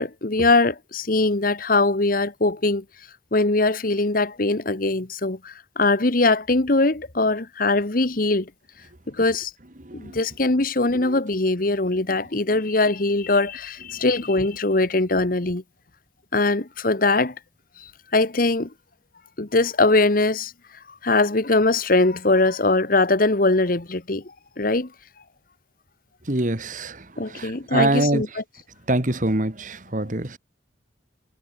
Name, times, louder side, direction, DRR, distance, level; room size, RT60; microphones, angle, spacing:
voice 1, 0.0-2.8 3.3-8.5 9.1-9.5 9.9-15.6 16.3-17.3 17.8-18.7 19.4-20.5 21.0-24.2 24.6-24.9 27.2-28.4, left 2 dB, 50° left, 1.4 m, -21 dB
voice 2, 26.3-27.0 27.4-28.2 28.9-30.4, right 1 dB, 45° right, 2.1 m, -24 dB
head